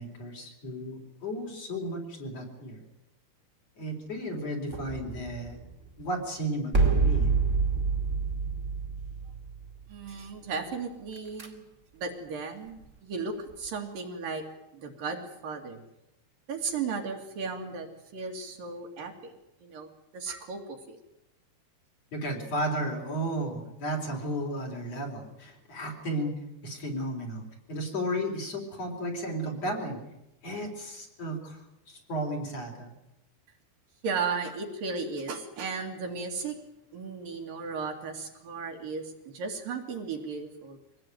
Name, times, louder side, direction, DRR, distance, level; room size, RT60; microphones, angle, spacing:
voice 1, 0.0-2.8 3.8-5.6 6.0-7.3 22.1-26.3 26.6-30.0 30.4-32.9, right 1 dB, 40° left, 1 dB, 4.8 m, -34 dB
sound 1, 4.7-6.0 6.7-10.0 11.2-11.5, right 4 dB, 20° right, 2.2 m, -27 dB
voice 2, 9.9-11.7 11.9-14.4 14.7-15.8 16.5-17.9 18.1-19.3 19.6-21.0 34.0-36.6 36.9-40.8, right 4 dB, 60° right, 2 dB, 3.7 m, -35 dB
24.5 x 18.5 x 9.2 m, 0.91 s
omnidirectional pair, 4.7 m